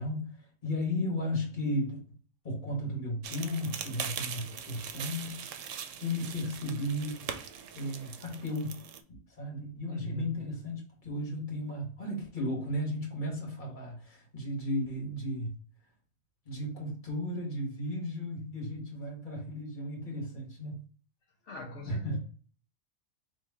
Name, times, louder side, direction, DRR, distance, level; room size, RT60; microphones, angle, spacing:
voice 1, 0.0-2.0 2.4-5.7 6.0-7.3 7.7-8.8 9.1-15.6 16.4-20.8 21.9-22.2, left 1 dB, 40° left, 1.6 m, -35 dB
sound 1, 3.2-9.0, right 8 dB, 90° right, 0.9 m, -41 dB
voice 2, 9.9-10.3 21.4-22.2, equal, 75° left, 1.0 m, -41 dB
4.1 x 3.0 x 3.5 m
omnidirectional pair, 1.3 m